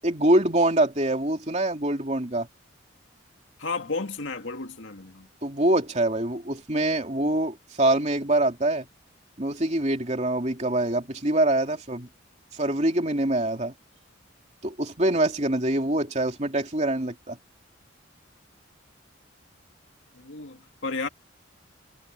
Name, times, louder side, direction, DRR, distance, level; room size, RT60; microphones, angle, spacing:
voice 1, 0.0-2.5 5.4-8.8 9.4-12.1 12.5-13.7 14.6-17.4, right 1 dB, 35° right, 2.9 m, -24 dB
voice 2, 3.6-5.3 20.1-21.1, left 3 dB, 75° left, 2.2 m, -33 dB
head